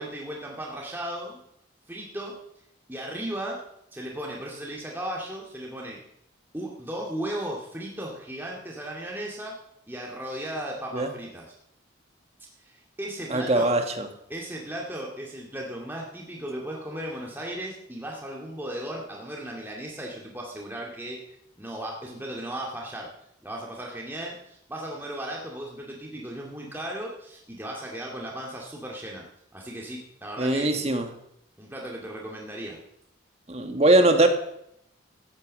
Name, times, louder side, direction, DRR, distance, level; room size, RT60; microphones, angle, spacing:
voice 1, 0.0-1.4 1.9-2.4 2.9-3.6 3.9-6.0 6.5-9.6 9.9-11.5 12.6-13.8 14.3-21.2 21.6-23.1 23.4-29.2 29.5-31.0 31.6-32.8, right 1 dB, 10° right, -2 dB, 2.1 m, -36 dB
voice 2, 13.3-14.1 30.4-31.1 33.5-34.3, right 2 dB, 30° right, 6 dB, 1.5 m, -21 dB
14.5 x 9.5 x 7.6 m, 0.76 s
head